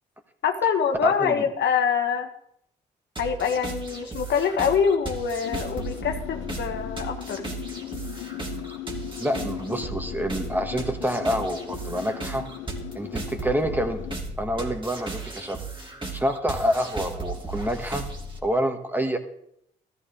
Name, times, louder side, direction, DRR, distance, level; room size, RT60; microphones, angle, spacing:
voice 1, 0.4-2.3 3.2-7.4, left 7 dB, 65° left, 5 dB, 1.3 m, -25 dB
voice 2, 1.0-1.5 9.2-12.5 12.9-14.0 14.4-15.6 16.1-18.0 18.4-19.2, equal, 10° right, 6 dB, 2.0 m, -27 dB
sound 1, 3.2-18.4, right 3 dB, 25° right, 2.9 m, -36 dB
sound 2, 5.4-14.2, left 14 dB, 80° left, 0.7 m, -38 dB
14.0 x 13.5 x 3.6 m, 0.74 s
supercardioid pair, 55°, 19 cm